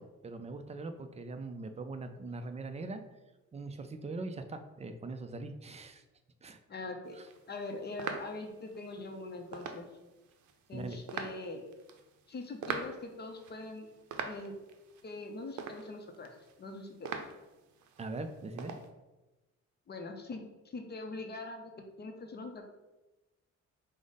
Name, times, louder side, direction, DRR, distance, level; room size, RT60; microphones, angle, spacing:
voice 1, 0.0-3.0 3.5-6.0 6.4-6.6 10.7-11.0 18.0-18.7, right 3 dB, 20° right, 8 dB, 0.3 m, -41 dB
voice 2, 6.7-7.2 7.5-9.9 10.7-11.6 12.3-13.9 14.2-14.5 15.0-17.1 19.9-22.6, left 2 dB, 35° left, 4 dB, 0.5 m, -42 dB
sound 1, 7.1-18.9, right 6 dB, 75° right, 0.6 m, -45 dB
4.9 x 2.1 x 3.9 m, 1.1 s
cardioid pair, 90°, 30 cm